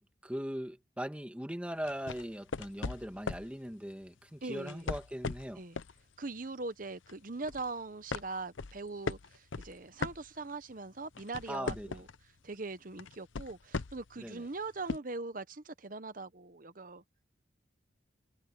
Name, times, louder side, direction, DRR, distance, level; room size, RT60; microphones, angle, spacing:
voice 1, 0.0-5.6 11.5-12.0 14.2-14.5, equal, 5° right, 1.6 m, -40 dB
sound 1, 1.8-3.5 4.6-6.0 6.4-6.6 7.1-7.7 8.1-10.7 11.0-12.2 13.0-14.2 14.9-15.0, left 4 dB, 85° left, 0.7 m, -38 dB
voice 2, 4.4-4.9 5.6-5.8 6.2-12.1 12.4-17.2, right 3 dB, 45° right, 1.0 m, -41 dB
head